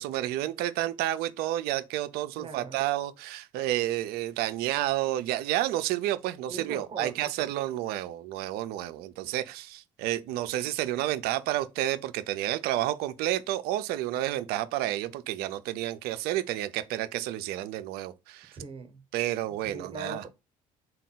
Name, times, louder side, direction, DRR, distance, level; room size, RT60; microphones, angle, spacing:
voice 1, 0.0-18.6 19.1-20.2, right 14 dB, 65° right, 0.4 m, -30 dB
voice 2, 2.4-2.8 6.5-7.5 18.5-19.0 19.7-20.3, right 3 dB, 30° right, 0.8 m, -40 dB
3.5 x 2.3 x 3.9 m
hypercardioid pair, 60°, 17 cm